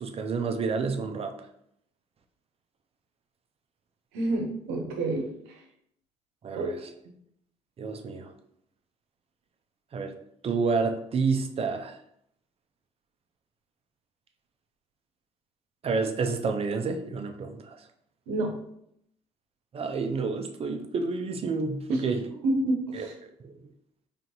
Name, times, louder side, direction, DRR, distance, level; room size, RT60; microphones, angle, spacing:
voice 1, 0.0-1.3 6.4-6.8 7.8-8.3 9.9-10.1 10.4-12.0 15.8-17.8 19.7-22.2 22.9-23.5, right 4 dB, 40° right, 6 dB, 0.6 m, -29 dB
voice 2, 4.1-5.6 6.5-7.0 18.3-18.5 21.9-22.0 22.4-23.1, right 2 dB, 90° right, 2 dB, 0.8 m, -29 dB
3.8 x 3.3 x 2.9 m, 0.73 s
supercardioid pair, 70°, 15 cm